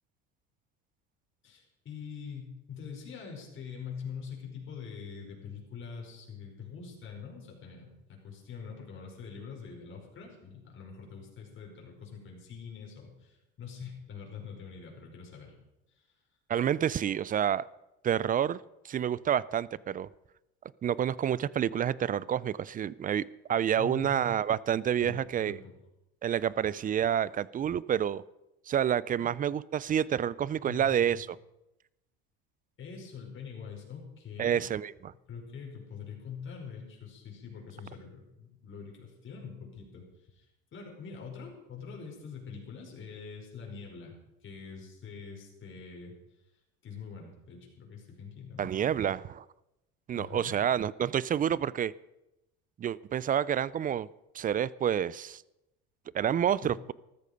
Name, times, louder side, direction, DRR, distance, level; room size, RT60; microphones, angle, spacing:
voice 1, 1.4-15.5 23.7-24.3 25.0-25.7 29.2-29.3 30.7-31.2 32.8-34.7 35.3-40.0 40.3-44.1 44.4-46.2 46.8-48.7 50.1-50.6 56.6-56.7, left 6 dB, 40° left, 0 dB, 5.2 m, -44 dB
voice 2, 16.5-17.7 18.0-18.6 18.8-20.1 20.8-23.2 23.5-25.6 26.2-28.2 28.7-31.3 34.4-34.9 48.6-49.4 50.1-51.9 52.8-54.1 54.3-55.4 56.1-56.9, right 9 dB, 30° right, 21 dB, 0.4 m, -28 dB
13.5 x 13.5 x 5.2 m, 0.92 s
supercardioid pair, 100°, 30 cm